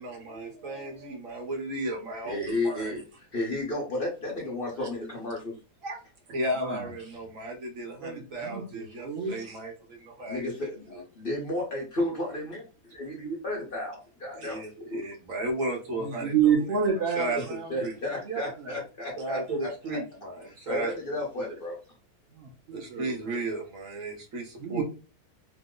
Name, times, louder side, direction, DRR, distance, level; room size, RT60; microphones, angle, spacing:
voice 1, 0.0-3.0 4.8-4.9 5.8-6.0 6.3-10.4 10.9-11.0 14.3-16.3 17.1-17.9 19.2-20.9 22.7-24.8, right 1 dB, 60° right, 1.1 m, -34 dB
voice 2, 2.2-3.0 3.3-5.5 10.3-12.6 12.9-14.6 14.9-15.0 17.3-17.4 17.7-20.0 20.5-21.7, left 1 dB, 40° left, 0.9 m, -32 dB
voice 3, 6.6-6.9 8.0-9.3 15.9-17.8 18.2-18.8 22.3-23.3 24.6-24.8, right 7 dB, 90° right, 0.5 m, -29 dB
3.0 x 2.0 x 3.6 m
omnidirectional pair, 1.7 m